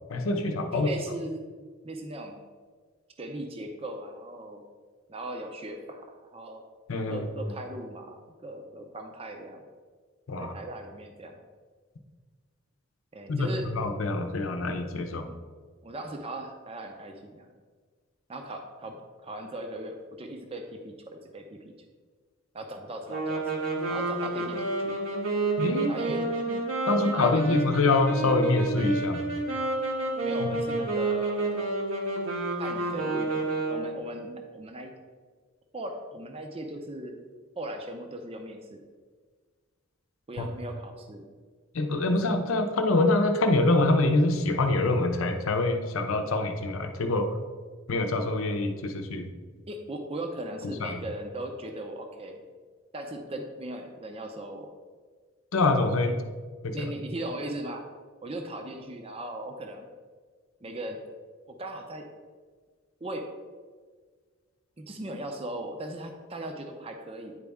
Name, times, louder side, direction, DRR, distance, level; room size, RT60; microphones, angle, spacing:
voice 1, 0.1-0.9 6.9-7.3 10.3-10.5 13.3-15.3 25.6-25.9 26.5-26.6 26.9-29.3 30.4-30.6 40.4-40.5 41.7-47.3 47.9-49.3 50.8-51.0 55.5-56.1 56.6-56.9, left 2 dB, 80° left, 6 dB, 0.7 m, -25 dB
voice 2, 0.7-1.4 1.8-2.4 3.2-4.6 5.1-6.6 7.1-9.6 10.4-11.4 13.1-13.7 15.3-15.4 15.8-17.5 18.3-21.7 22.5-25.0 25.9-26.3 27.0-27.6 30.2-31.6 32.6-34.9 35.7-37.2 37.6-38.8 40.3-41.3 49.7-52.4 52.9-54.7 56.7-57.8 58.2-59.9 60.6-61.0 61.5-62.0 63.0-63.2 64.8-67.4, right 1 dB, 30° right, 4 dB, 0.6 m, -38 dB
sound 1, 23.1-34.1, right 2 dB, 80° right, 1.3 m, -30 dB
9.7 x 4.1 x 3.5 m, 1.5 s
head